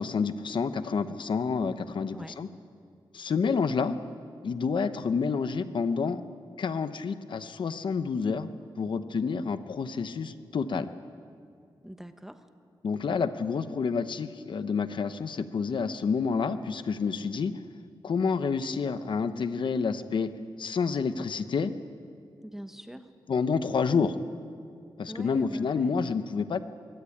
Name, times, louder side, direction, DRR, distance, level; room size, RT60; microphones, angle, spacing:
voice 1, 0.0-2.5 3.1-4.0 4.4-6.2 6.6-8.5 8.8-10.9 12.8-17.5 18.0-20.3 20.6-21.7 23.3-24.2 25.0-26.6, left 5 dB, 65° left, 11 dB, 0.9 m, -29 dB
voice 2, 11.8-12.5 22.4-23.1 25.1-26.0, equal, 5° right, 8 dB, 1.0 m, -43 dB
24.0 x 17.0 x 8.6 m, 2.3 s
wide cardioid pair, 150°, 9 cm